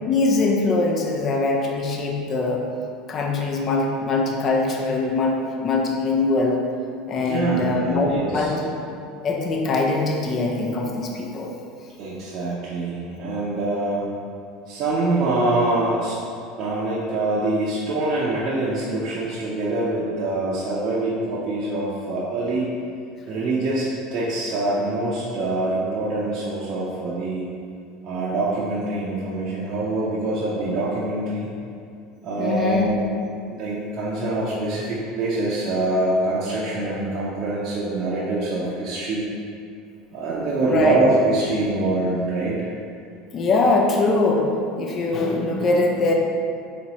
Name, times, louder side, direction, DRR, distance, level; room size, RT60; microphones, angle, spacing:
voice 1, 0.1-2.6 3.1-6.6 7.1-8.5 9.2-11.5 32.4-32.9 40.6-41.0 43.3-44.5 44.8-46.1, left 3 dB, 40° left, 1 dB, 0.6 m, -22 dB
voice 2, 7.2-8.5 12.0-14.1 14.7-16.2 16.6-22.7 23.3-27.4 28.0-31.5 32.2-33.0 33.5-39.3 40.1-42.6, right 2 dB, 50° right, -8 dB, 0.6 m, -24 dB
4.1 x 3.0 x 2.9 m, 2.4 s
hypercardioid pair, 90°, 0 cm